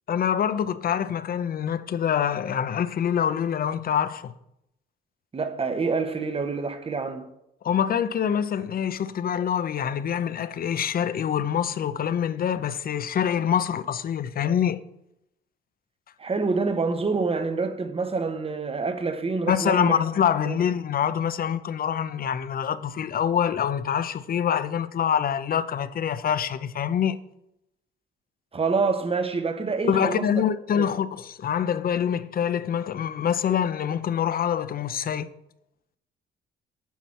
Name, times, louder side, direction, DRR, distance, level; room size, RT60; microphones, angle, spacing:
voice 1, 0.1-4.3 7.6-14.8 19.5-27.2 29.8-35.3, left 8 dB, 50° left, 0.6 m, -25 dB
voice 2, 5.3-7.3 16.2-20.0 20.5-20.6 28.5-30.4 30.7-30.9, right 4 dB, 30° right, 1.0 m, -27 dB
9.3 x 6.1 x 4.2 m
cardioid pair, 90°, 20 cm